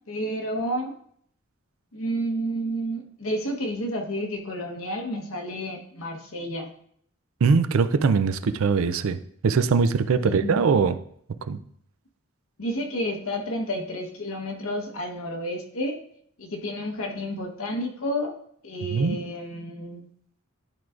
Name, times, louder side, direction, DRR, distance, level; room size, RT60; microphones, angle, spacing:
voice 1, 0.1-0.9 1.9-6.7 10.2-10.6 12.6-16.0 16.4-18.3 18.6-20.0, equal, 85° left, 2 dB, 1.1 m, -30 dB
voice 2, 7.4-9.2 9.4-11.0 11.5-11.6 18.9-19.2, right 5 dB, 80° right, 12 dB, 0.4 m, -21 dB
10.5 x 4.6 x 2.5 m, 0.65 s
head